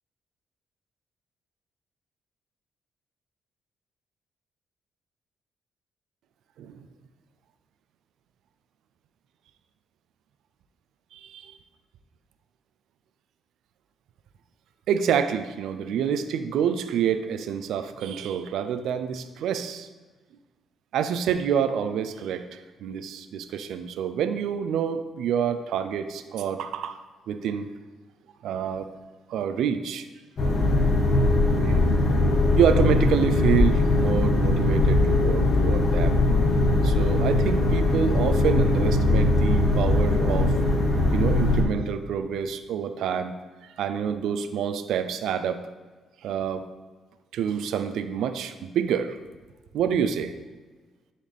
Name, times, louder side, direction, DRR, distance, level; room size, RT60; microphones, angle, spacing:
voice 1, 11.1-11.5 14.9-19.9 20.9-27.0 27.3-27.7 28.4-28.9 29.3-30.1 31.6-31.8 32.6-36.2 36.8-40.5 41.1-43.3 43.6-45.6 46.2-46.7 47.3-49.2 49.7-50.3, right 8 dB, 80° right, 10 dB, 0.5 m, -27 dB
sound 1, 30.4-41.6, left 2 dB, 45° left, 1.4 m, -21 dB
10.0 x 4.1 x 3.5 m, 1.3 s
cardioid pair, 90°, 0 cm